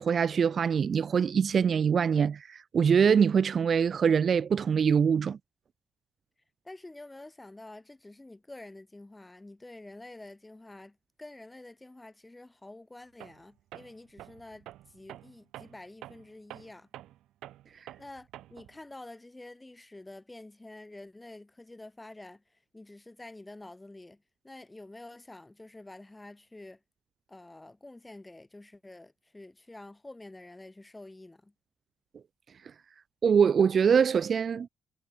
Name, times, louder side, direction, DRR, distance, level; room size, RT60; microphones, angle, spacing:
voice 1, 0.0-5.4 33.2-34.7, right 7 dB, 50° right, 0.3 m, -24 dB
voice 2, 6.6-16.9 18.0-22.4 22.7-26.8 27.3-31.5, left 2 dB, 15° left, 5.5 m, -48 dB
Tools, 13.2-13.4 13.7-18.8, right 14 dB, 85° right, 4.2 m, -48 dB
cardioid pair, 90°, 0 cm